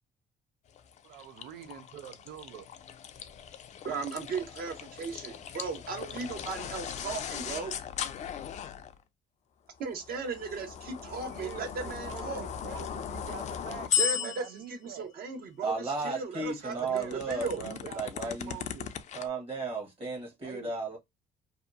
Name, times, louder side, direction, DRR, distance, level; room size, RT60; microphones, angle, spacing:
sound 1, 0.8-9.0 9.9-14.7 16.3-19.3, left 9 dB, 45° left, 0.4 m, -37 dB
voice 1, 1.0-2.7 11.0-15.1 16.7-17.3 17.6-19.0 20.4-21.0, right 10 dB, 85° right, 0.5 m, -46 dB
voice 2, 3.8-7.7 9.8-12.4 14.0-17.7, right 5 dB, 60° right, 1.0 m, -36 dB
voice 3, 15.6-18.6 19.1-21.0, right 3 dB, 35° right, 1.1 m, -34 dB
2.7 x 2.3 x 2.4 m
cardioid pair, 110°, 17 cm